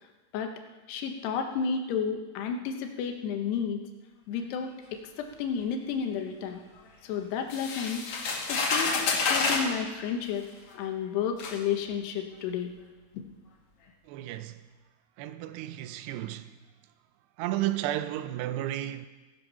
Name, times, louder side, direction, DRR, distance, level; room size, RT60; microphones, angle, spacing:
voice 1, 0.9-3.8 4.3-6.6 7.0-8.0 8.5-10.4 10.7-12.8 13.1-13.2, left 7 dB, 80° left, 3.2 m, -32 dB
sound 1, 7.5-9.7 10.7-10.8 11.4-11.6, left 4 dB, 55° left, 1.6 m, -28 dB
voice 2, 14.1-14.6 15.2-16.5 17.4-19.1, right 13 dB, 90° right, 2.8 m, -32 dB
16.5 x 10.0 x 5.6 m
omnidirectional pair, 4.7 m